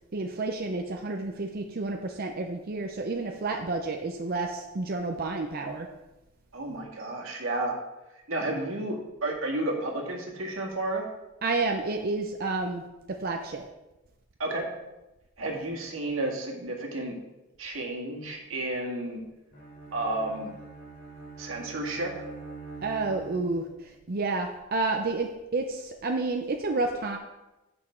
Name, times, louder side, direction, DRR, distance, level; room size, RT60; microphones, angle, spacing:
voice 1, 0.1-5.9 11.4-13.6 22.8-27.2, right 3 dB, 50° right, 3 dB, 0.6 m, -30 dB
voice 2, 6.5-7.8 8.3-11.0 14.4-14.7 15.4-17.2 17.6-19.2 19.9-20.5 21.4-22.1, right 2 dB, 85° right, 0 dB, 1.8 m, -32 dB
Bowed string instrument, 19.5-23.9, right 3 dB, 65° left, 2.8 m, -44 dB
8.5 x 6.1 x 4.4 m, 1.0 s
head